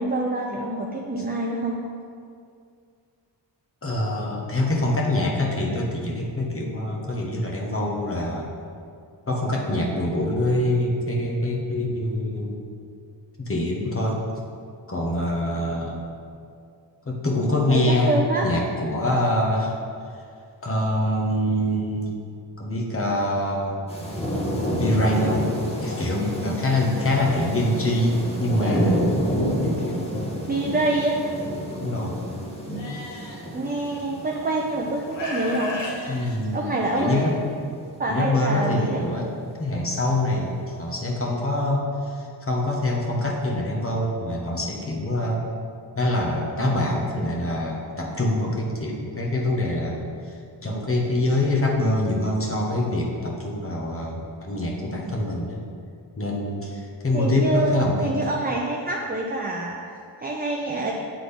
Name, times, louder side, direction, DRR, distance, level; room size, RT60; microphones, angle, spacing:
voice 1, 0.0-1.8 17.7-18.5 30.5-31.3 33.5-35.8 36.5-37.2 38.0-39.0 57.1-60.9, right 2 dB, 20° right, -1 dB, 0.6 m, -26 dB
voice 2, 3.8-8.5 9.3-12.6 13.4-14.2 14.9-16.0 17.1-19.7 20.6-22.2 22.6-23.8 24.8-25.5 25.8-29.1 29.6-30.0 31.7-32.3 36.1-37.4 38.1-39.3 39.6-45.4 46.0-50.1 50.6-55.6 56.2-58.2, left 1 dB, 30° left, -2 dB, 1.2 m, -25 dB
sound 1, 23.9-36.8 37.2-37.3, equal, 15° left, 1.3 m, -29 dB
Livestock farm animals working animals, 32.8-33.4 34.3-34.4 35.1-37.1, left 1 dB, 85° left, 1.0 m, -33 dB
8.0 x 3.8 x 3.4 m, 2.3 s
cardioid pair, 60°, 44 cm